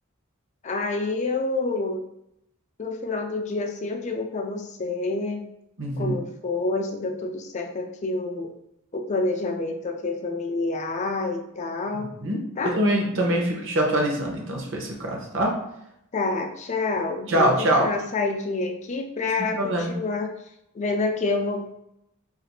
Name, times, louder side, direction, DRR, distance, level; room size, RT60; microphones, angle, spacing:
voice 1, 0.6-2.0 2.8-5.4 6.0-8.5 8.9-12.1 12.6-12.8 16.1-17.5 17.8-20.3 20.7-21.7, left 3 dB, 30° left, 4 dB, 0.4 m, -28 dB
voice 2, 5.8-6.2 11.9-12.4 12.8-15.5 17.3-17.9 19.4-19.9, right 1 dB, 60° right, 0 dB, 0.8 m, -24 dB
2.5 x 2.4 x 4.1 m, 0.79 s
head